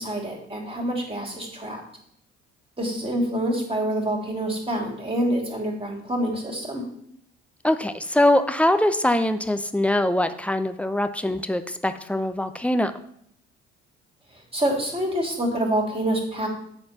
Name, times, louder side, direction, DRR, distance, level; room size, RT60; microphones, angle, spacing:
voice 1, 0.0-1.8 2.8-6.8 14.5-16.5, right 1 dB, 20° right, 0 dB, 3.1 m, -26 dB
voice 2, 7.6-12.9, left 1 dB, 5° left, 9 dB, 0.7 m, -22 dB
8.6 x 4.4 x 5.7 m, 0.68 s
hypercardioid pair, 55°, 31 cm